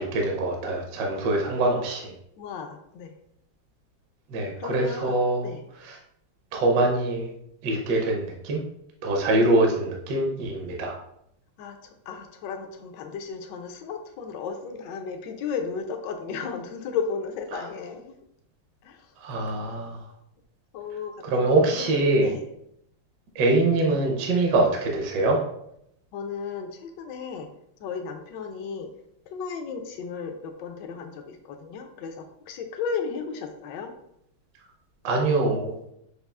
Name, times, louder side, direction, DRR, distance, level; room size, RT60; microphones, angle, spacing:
voice 1, 0.0-2.1 4.3-5.5 6.5-7.3 7.6-8.6 9.0-11.0 17.5-17.6 19.2-20.0 21.2-22.3 23.3-25.4 35.0-35.7, right 2 dB, 65° right, 0 dB, 1.1 m, -24 dB
voice 2, 2.4-3.1 4.6-5.6 11.6-18.1 18.8-19.1 19.5-19.6 20.7-22.4 26.1-27.5 27.8-28.9 29.3-33.9, left 6 dB, 75° left, 5 dB, 1.1 m, -34 dB
6.6 x 2.3 x 2.3 m, 0.76 s
omnidirectional pair, 2.3 m